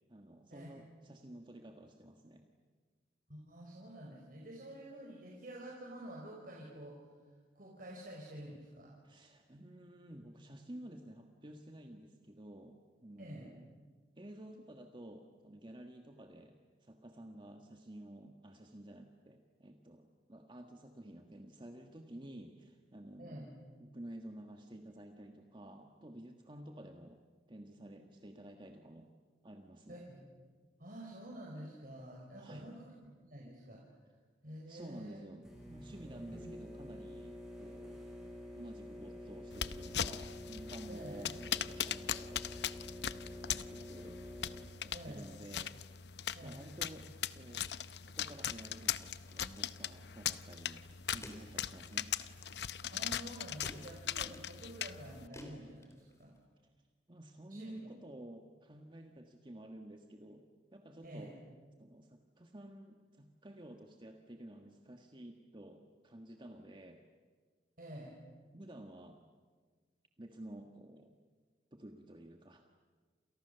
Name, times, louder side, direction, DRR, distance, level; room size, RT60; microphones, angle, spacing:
voice 1, 0.1-2.5 9.0-13.7 14.1-23.5 23.8-29.1 29.4-30.0 32.4-32.8 34.7-38.0 38.5-42.5 43.3-44.2 44.8-45.8 46.4-47.7 48.0-52.1 57.1-60.5 60.7-61.4 61.8-67.0 68.5-69.2 70.2-71.2 71.7-72.6, right 1 dB, 25° right, 4 dB, 1.5 m, -52 dB
voice 2, 3.3-7.0 7.5-8.9 13.2-13.5 23.2-23.5 27.8-28.1 29.9-30.3 30.8-32.9 33.2-33.8 34.4-35.2 40.9-41.3 44.9-45.3 46.3-46.6 52.9-56.3 57.5-57.9 61.0-61.3 67.8-68.1, right 1 dB, 50° right, -2 dB, 5.2 m, -49 dB
sound 1, 35.4-44.6, left 1 dB, 5° right, 6.8 m, -48 dB
sound 2, 39.5-55.3, left 9 dB, 65° left, 0.8 m, -40 dB
sound 3, 49.0-56.5, left 1 dB, 15° left, 3.4 m, -57 dB
29.5 x 28.5 x 6.9 m, 1.5 s
head